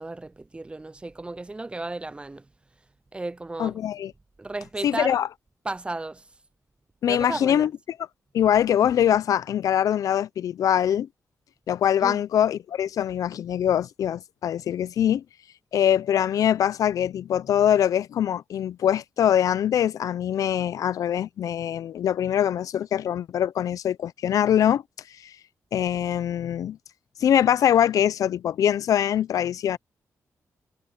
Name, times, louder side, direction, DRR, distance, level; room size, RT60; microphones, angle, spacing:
voice 1, 0.0-2.4 3.1-3.8 4.4-5.2 5.6-6.2 7.1-7.7 12.0-12.2, right 2 dB, 20° right, 0.4 m, -34 dB
voice 2, 3.6-4.1 4.8-5.3 7.0-7.7 8.3-11.1 11.7-15.2 15.7-24.8 25.2-25.3 25.7-26.8 27.2-29.8, left 10 dB, 80° left, 0.5 m, -23 dB
cardioid pair, 100°, 6 cm